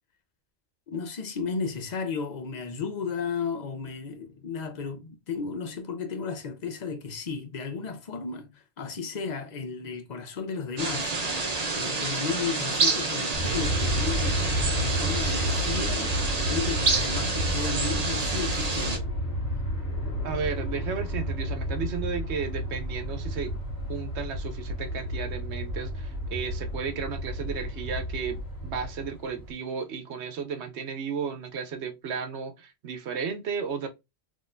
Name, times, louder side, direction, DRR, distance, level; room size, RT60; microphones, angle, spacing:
voice 1, 0.9-11.1 11.7-16.1 16.5-19.1, left 5 dB, 45° left, 0.8 m, -34 dB
sound 1, 10.8-19.0, right 3 dB, 40° right, 0.9 m, -28 dB
Aircraft, 13.3-29.5, equal, 20° left, 2.1 m, -31 dB
voice 2, 20.2-23.6 23.9-33.9, right 6 dB, 75° right, 1.0 m, -34 dB
4.0 x 3.1 x 2.6 m
omnidirectional pair, 1.2 m